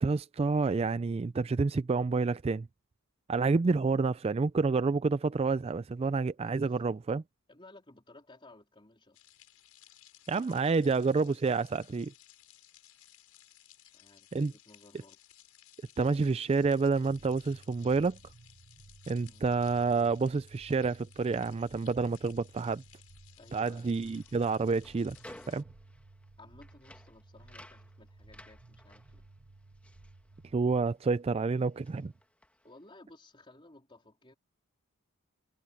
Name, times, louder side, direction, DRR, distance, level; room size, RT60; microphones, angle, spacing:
voice 1, 0.0-2.7 3.3-7.2 10.3-12.1 14.3-14.5 16.0-18.2 19.1-22.8 23.5-25.2 25.5-25.6 30.5-32.1, right 4 dB, 25° right, 0.3 m, -28 dB
voice 2, 6.4-7.0 7.5-9.2 13.8-15.2 19.3-19.5 23.4-23.9 26.4-29.3 32.6-34.3, left 2 dB, 25° left, 3.8 m, -57 dB
sound 1, 9.1-25.6, left 13 dB, 80° left, 6.1 m, -59 dB
sound 2, 17.1-30.8, right 2 dB, 45° right, 1.0 m, -56 dB
sound 3, 23.7-31.1 31.3-32.8, left 1 dB, 5° left, 1.9 m, -56 dB
head